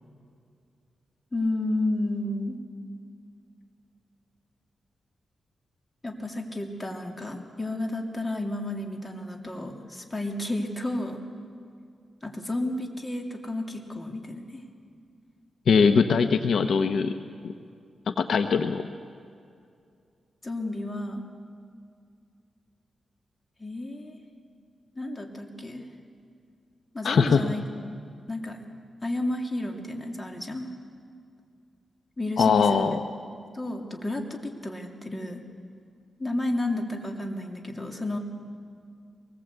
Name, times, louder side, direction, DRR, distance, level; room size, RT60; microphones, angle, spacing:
voice 1, 1.3-2.6 6.0-11.2 12.2-14.6 20.4-21.2 23.6-24.2 24.9-25.9 26.9-27.9 28.3-28.6 29.0-30.7 32.2-32.8 33.3-35.4 36.2-38.2, left 1 dB, 20° left, 2 dB, 2.7 m, -31 dB
voice 2, 15.7-17.1 17.4-17.5 18.1-18.9 27.0-27.4 32.4-33.0, left 5 dB, 75° left, 8 dB, 1.0 m, -21 dB
23.0 x 20.0 x 8.2 m, 2.4 s
wide cardioid pair, 105°, 0 cm